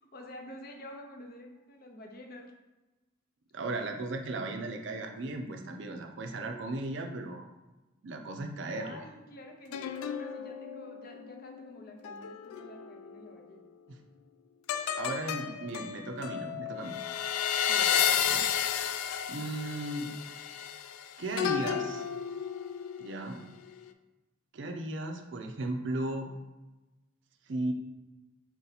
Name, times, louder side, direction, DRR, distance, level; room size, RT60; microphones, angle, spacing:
voice 1, 0.0-2.5 8.5-13.7 17.7-18.2, left 1 dB, 45° left, 2 dB, 0.7 m, -48 dB
voice 2, 3.5-7.5 8.0-9.0 15.0-17.0 18.3-18.4 19.3-20.1 21.2-22.0 23.0-23.4 24.5-26.3 27.5-27.7, right 2 dB, 60° right, 4 dB, 0.4 m, -36 dB
sound 1, 9.7-13.4 14.7-23.2 23.6-23.9, left 8 dB, 90° left, 0.3 m, -33 dB
4.4 x 2.8 x 4.0 m, 1.1 s
head